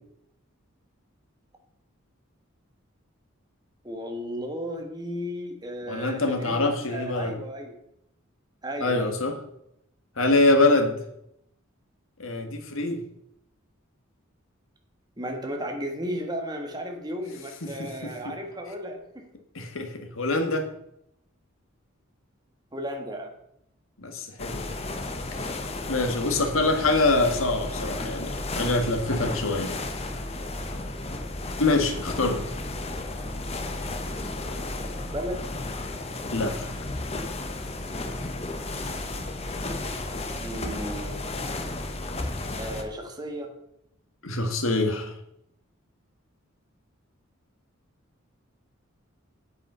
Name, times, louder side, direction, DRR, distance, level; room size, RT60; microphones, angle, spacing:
voice 1, 3.8-7.8 8.6-9.1 15.2-19.3 22.7-23.3 35.1-35.5 40.4-41.2 42.6-43.5, equal, 20° right, 3 dB, 1.6 m, -34 dB
voice 2, 5.9-7.4 8.8-9.4 10.2-10.9 12.2-13.0 17.8-17.9 19.6-20.7 24.0-24.8 25.3-25.5 25.9-29.8 31.6-32.4 36.3-36.7 44.2-45.1, left 2 dB, 80° left, 5 dB, 1.6 m, -24 dB
sound 1, 24.4-42.8, left 2 dB, 30° left, 1.0 m, -33 dB
8.6 x 8.4 x 5.6 m, 0.79 s
head